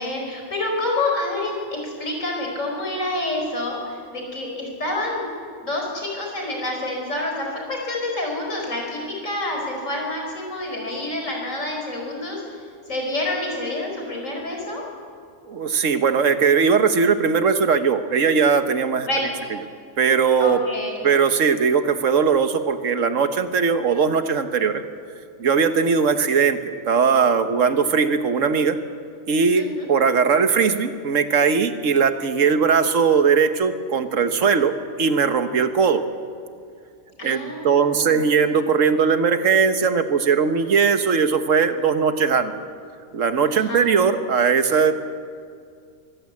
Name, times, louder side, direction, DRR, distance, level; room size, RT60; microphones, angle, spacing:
voice 1, 0.0-5.3 5.6-12.4 12.9-14.8 19.0-19.3 20.4-21.0 29.6-29.9 37.2-38.2 43.5-43.8, left 2 dB, 75° left, 0 dB, 5.4 m, -28 dB
voice 2, 15.5-19.1 20.0-20.6 21.0-24.8 25.4-26.6 26.9-28.8 29.3-36.0 37.2-42.5 43.1-44.9, right 6 dB, 75° right, 9 dB, 1.5 m, -19 dB
23.0 x 15.0 x 8.4 m, 2.3 s
omnidirectional pair, 1.4 m